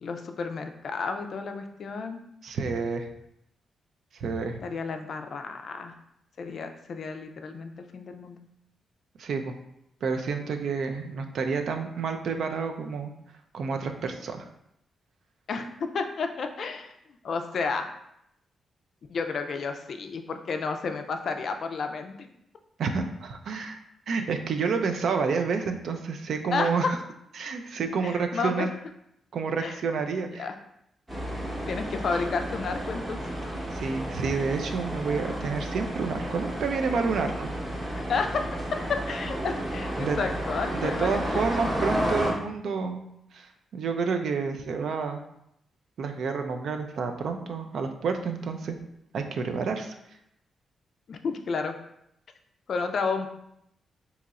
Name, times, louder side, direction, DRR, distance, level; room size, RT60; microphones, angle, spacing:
voice 1, 0.0-2.2 4.6-5.9 6.4-8.4 15.5-16.9 17.2-17.9 19.1-22.3 26.5-26.9 28.0-28.7 29.6-29.8 30.4-30.6 31.7-33.6 37.9-41.4 51.1-51.7 52.7-53.3, left 4 dB, 55° left, 6 dB, 0.3 m, -31 dB
voice 2, 2.4-3.1 4.1-4.6 9.2-9.5 10.0-13.1 13.5-14.5 22.8-23.8 24.1-26.9 27.4-28.7 29.3-30.5 33.7-37.5 40.0-40.2 40.8-43.0 43.3-45.2 46.0-48.8 49.1-49.9, right 5 dB, 70° right, 6 dB, 0.4 m, -29 dB
sound 1, 31.1-42.3, right 1 dB, 15° right, 0.8 m, -32 dB
2.8 x 2.4 x 4.0 m, 0.78 s
cardioid pair, 120°, 0 cm